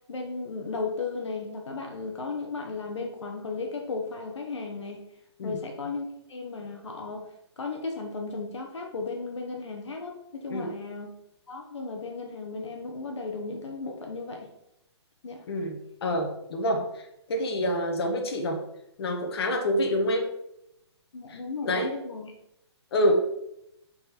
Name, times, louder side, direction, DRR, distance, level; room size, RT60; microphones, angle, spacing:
voice 1, 0.1-5.0 5.4-7.3 7.6-11.1 11.5-14.5 15.2-15.4 21.1-22.3 23.0-23.1, left 3 dB, 80° left, 2 dB, 1.2 m, -35 dB
voice 2, 15.5-18.6 19.0-20.3 21.3-21.9 22.9-23.1, equal, 60° left, 3 dB, 1.4 m, -27 dB
5.6 x 4.2 x 5.0 m, 0.81 s
hypercardioid pair, 140°, 15 cm